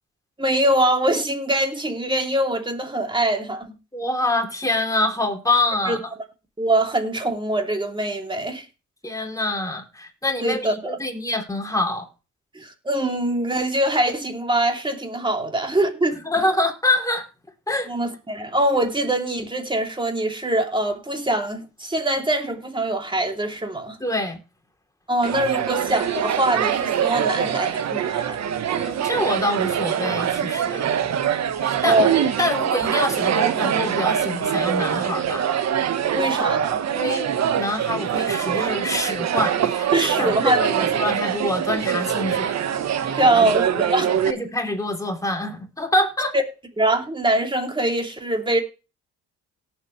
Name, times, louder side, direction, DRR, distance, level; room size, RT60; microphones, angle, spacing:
voice 1, 0.4-3.8 5.9-6.0 6.6-8.7 10.4-11.0 12.5-16.2 17.9-24.0 25.1-28.4 31.8-32.2 36.1-36.8 39.9-40.9 43.2-44.2 46.3-46.4 46.8-48.6, right 1 dB, 15° right, 2.8 m, -23 dB
voice 2, 3.9-6.1 9.0-12.1 16.2-17.3 17.7-17.9 24.0-24.4 28.7-30.9 31.6-32.0 32.4-35.5 36.9-42.7 43.0-43.5 44.0-46.3, left 1 dB, 10° left, 3.1 m, -26 dB
sound 1, 25.2-44.3, right 9 dB, 60° right, 1.2 m, -24 dB
18.0 x 7.4 x 3.2 m
cardioid pair, 90°, 30 cm